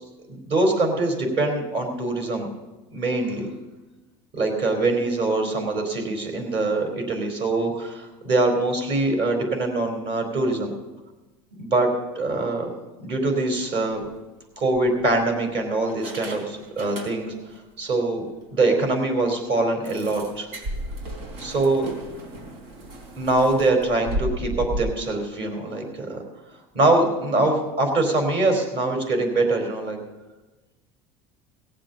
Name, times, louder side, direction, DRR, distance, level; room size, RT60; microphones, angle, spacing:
voice 1, 0.3-2.5 2.9-3.5 4.3-10.7 11.6-12.7 13.0-14.0 14.6-17.3 17.8-18.2 18.5-20.5 21.4-21.9 23.2-26.2 26.7-30.0, right 2 dB, 45° right, 4 dB, 4.0 m, -23 dB
sound 1, 13.8-14.0 14.7-15.4 15.9-17.5 17.8-18.0 18.4-18.5 18.8-18.9 19.8-24.8, right 1 dB, 80° right, 3.8 m, -35 dB
18.0 x 7.6 x 6.9 m, 1.1 s
cardioid pair, 155°, 14 cm